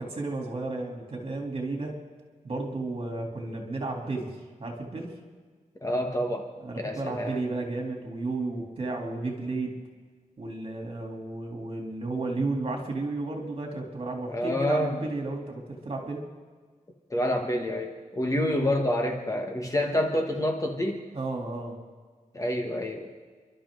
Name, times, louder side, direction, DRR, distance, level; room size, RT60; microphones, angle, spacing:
voice 1, 0.0-2.0 2.4-4.3 4.6-5.1 6.6-9.8 10.4-16.2 21.1-21.8, right 2 dB, 45° right, 1 dB, 3.2 m, -33 dB
voice 2, 5.8-7.4 14.3-15.0 17.1-21.0 22.3-23.1, left 1 dB, 25° left, 2 dB, 1.5 m, -28 dB
29.5 x 12.0 x 3.9 m, 1.5 s
wide cardioid pair, 150°, 14 cm